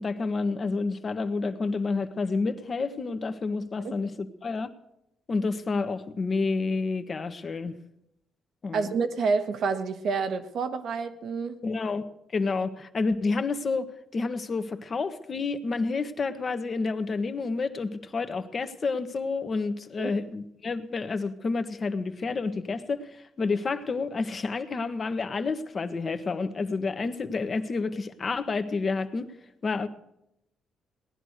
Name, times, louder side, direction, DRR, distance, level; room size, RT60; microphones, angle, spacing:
voice 1, 0.0-4.7 5.3-7.7 8.6-8.9 11.6-12.0 12.3-29.3 29.6-29.9, left 4 dB, 40° left, 9 dB, 1.3 m, -29 dB
voice 2, 8.7-11.6 20.0-20.1, right 5 dB, 65° right, 8 dB, 1.3 m, -28 dB
18.5 x 11.0 x 6.6 m, 0.82 s
cardioid pair, 90°, 0 cm